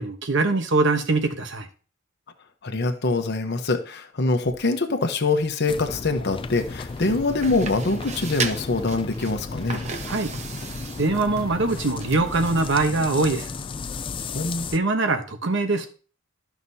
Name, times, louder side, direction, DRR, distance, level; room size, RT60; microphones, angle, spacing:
voice 1, 0.0-1.7 10.1-10.3 11.0-13.5 14.7-15.9, right 3 dB, 65° right, 6 dB, 1.1 m, -22 dB
voice 2, 2.6-9.8 14.3-14.7, left 3 dB, 55° left, 6 dB, 1.0 m, -24 dB
sound 1, 5.7-14.8, left 4 dB, 25° left, 0.3 m, -34 dB
sound 2, 6.3-13.4, right 4 dB, 35° right, 0.8 m, -37 dB
13.0 x 5.9 x 2.8 m, 0.38 s
head